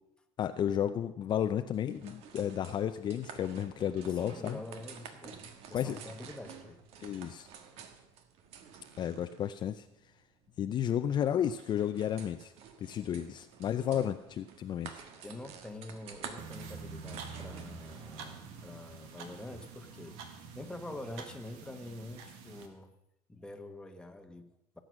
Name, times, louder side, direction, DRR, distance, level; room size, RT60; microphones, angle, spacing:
voice 1, 0.4-4.6 5.7-6.0 7.0-7.5 9.0-9.9 10.6-12.5 12.8-15.0, left 9 dB, 45° left, 8 dB, 0.6 m, -32 dB
sound 1, 1.7-18.2, right 7 dB, 70° right, 1.6 m, -51 dB
voice 2, 4.1-6.9 7.6-7.7 13.9-14.1 15.2-22.9 23.3-24.8, left 2 dB, 10° left, 6 dB, 1.3 m, -46 dB
sound 2, 16.4-22.7, right 5 dB, 85° right, 1.8 m, -47 dB
17.0 x 7.9 x 6.3 m, 0.83 s
cardioid pair, 120°, 11 cm